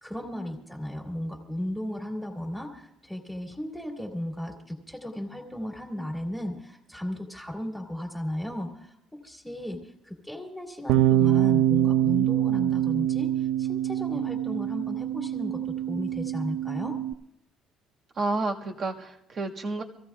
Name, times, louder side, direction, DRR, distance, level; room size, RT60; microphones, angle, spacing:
voice 1, 0.0-17.0, left 1 dB, ahead, 0 dB, 2.2 m, -35 dB
Bass guitar, 10.9-17.1, right 12 dB, 75° right, 0.5 m, -25 dB
voice 2, 18.1-19.8, right 3 dB, 30° right, 1 dB, 1.7 m, -30 dB
26.0 x 15.5 x 2.4 m, 0.83 s
cardioid pair, 175°, 0 cm